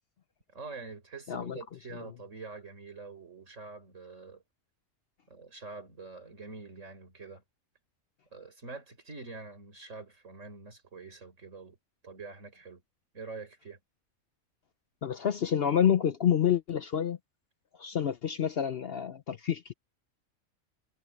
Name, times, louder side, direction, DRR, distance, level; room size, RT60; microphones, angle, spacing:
voice 1, 0.5-4.4 5.3-7.4 8.3-11.8 12.0-12.8 13.1-13.8, right 4 dB, 60° right, 4.9 m, -45 dB
voice 2, 1.3-1.6 15.0-17.2 17.8-19.7, left 9 dB, 55° left, 0.8 m, -28 dB
omnidirectional pair, 1.5 m